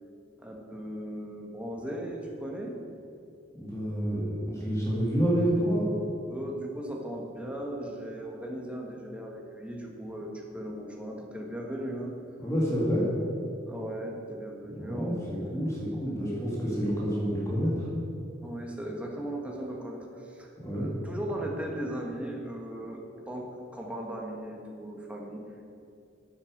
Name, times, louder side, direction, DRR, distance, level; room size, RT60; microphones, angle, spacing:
voice 1, 0.4-2.8 6.2-12.1 13.6-15.3 18.4-25.5, right 1 dB, 5° right, 0 dB, 1.4 m, -37 dB
voice 2, 3.6-5.9 12.4-13.1 14.7-15.1 15.5-17.9 20.6-20.9, equal, 15° left, -5 dB, 2.4 m, -28 dB
10.0 x 9.2 x 6.5 m, 2.6 s
head